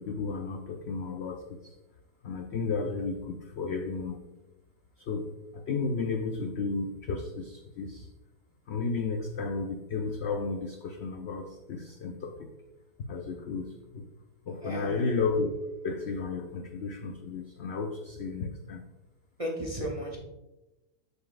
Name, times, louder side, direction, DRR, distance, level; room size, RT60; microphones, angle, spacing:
voice 1, 0.0-1.7 2.2-4.2 5.0-8.1 8.7-12.5 13.1-14.1 14.5-15.5 15.8-18.9, left 4 dB, 75° left, 5 dB, 0.6 m, -33 dB
voice 2, 14.6-15.0 19.4-20.2, equal, 35° right, -2 dB, 0.6 m, -34 dB
6.8 x 6.7 x 2.4 m, 1.0 s
omnidirectional pair, 1.7 m